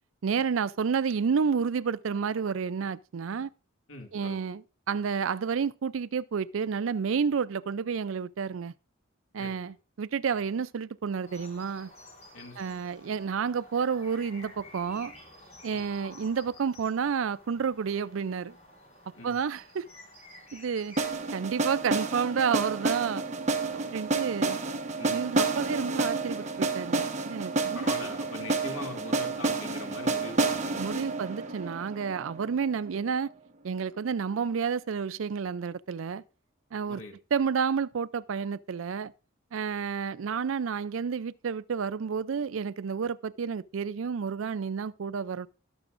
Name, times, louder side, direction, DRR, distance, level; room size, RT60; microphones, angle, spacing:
voice 1, 0.2-3.5 4.1-8.7 9.3-11.9 12.6-15.1 15.6-18.6 19.2-19.9 20.5-21.0 21.3-23.3 23.7-24.6 25.1-27.9 30.8-33.3 33.6-36.2 36.7-37.0 37.3-39.1 39.5-45.5, right 6 dB, 75° right, 0.4 m, -30 dB
voice 2, 3.9-4.4 9.4-9.7 12.3-12.8 15.7-15.8 19.1-19.3 25.0-25.2 27.7-31.1 36.9-37.1, left 2 dB, 85° left, 2.4 m, -42 dB
sound 1, 11.2-21.2, left 1 dB, 35° left, 5.2 m, -51 dB
sound 2, 21.0-32.9, right 3 dB, 35° right, 1.3 m, -30 dB
20.5 x 6.9 x 2.5 m
head